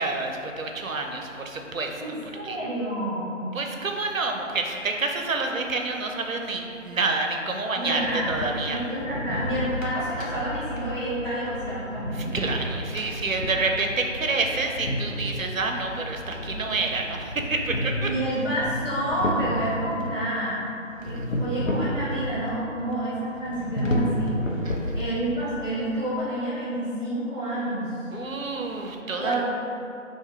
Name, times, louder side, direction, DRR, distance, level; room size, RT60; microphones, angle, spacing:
voice 1, 0.0-2.0 2.4-2.6 3.5-8.8 12.3-18.1 21.0-21.3 24.6-25.0 28.1-29.4, right 3 dB, 85° right, 3 dB, 0.6 m, -28 dB
voice 2, 1.9-3.5 7.7-8.3 8.7-12.5 18.0-20.6 21.0-24.4 24.9-27.9 29.2-29.4, right 1 dB, 35° right, -11 dB, 1.2 m, -29 dB
sound 1, 7.9-20.1 21.0-22.5 22.8-22.9 23.4-25.4, left 1 dB, 80° left, 0.6 m, -31 dB
3.6 x 2.6 x 3.2 m, 2.7 s
figure-of-eight pair, 175°, 39 cm